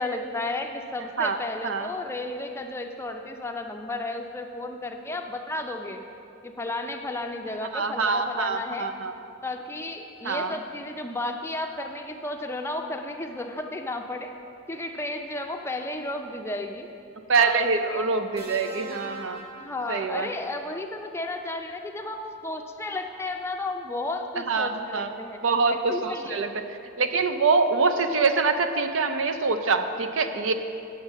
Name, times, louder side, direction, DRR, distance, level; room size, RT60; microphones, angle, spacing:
voice 1, 0.0-6.0 6.4-8.9 9.4-14.3 14.7-16.9 17.4-18.0 19.6-25.4 25.7-26.4, left 2 dB, 10° left, 4 dB, 0.5 m, -33 dB
voice 2, 7.7-9.1 10.2-10.6 17.3-19.4 19.9-20.3 24.5-25.1 25.4-26.5 27.0-30.5, right 4 dB, 65° right, 8 dB, 0.6 m, -24 dB
sound 1, 18.4-20.6 21.9-22.2, right 2 dB, 50° right, 1.1 m, -43 dB
9.1 x 7.2 x 6.3 m, 2.7 s
head